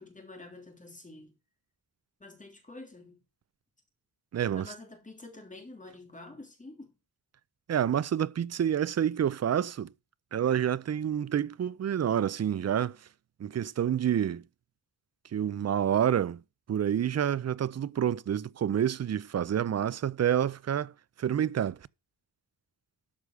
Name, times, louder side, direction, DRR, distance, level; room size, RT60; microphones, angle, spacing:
voice 1, 0.0-1.3 2.2-3.2 4.5-6.9, left 2 dB, 20° left, 3.2 m, -48 dB
voice 2, 4.3-4.7 7.7-9.9 10.3-13.0 13.4-14.4 15.3-16.4 16.7-20.9 21.2-21.8, right 9 dB, 40° right, 0.5 m, -28 dB
12.5 x 4.9 x 6.7 m
wide cardioid pair, 120°, 39 cm